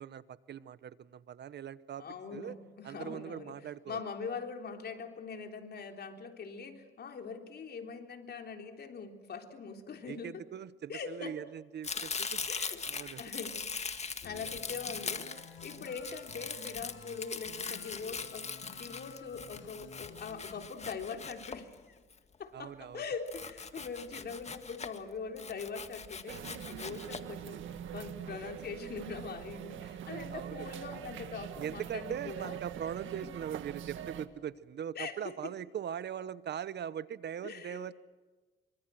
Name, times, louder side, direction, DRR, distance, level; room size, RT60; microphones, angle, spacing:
voice 1, 0.0-2.0 2.3-2.5 2.8-4.0 10.1-12.5 12.8-13.2 22.5-23.0 29.7-29.9 30.3-30.7 31.6-37.9, right 9 dB, 60° right, 16 dB, 1.0 m, -41 dB
voice 2, 2.0-10.4 10.9-11.4 12.5-13.6 14.2-22.0 22.4-32.8 33.2-33.3 34.9-35.5 37.4-37.9, left 5 dB, 55° left, 4 dB, 3.6 m, -42 dB
Domestic sounds home sounds, 11.8-22.1 23.3-25.0 25.4-27.2, left 5 dB, 35° left, 1.9 m, -41 dB
sound 1, 14.2-20.7, left 5 dB, 75° left, 6.5 m, -52 dB
sound 2, 26.3-34.3, right 9 dB, 75° right, 1.8 m, -44 dB
26.0 x 24.5 x 7.8 m, 1.3 s
cardioid pair, 90°, 20 cm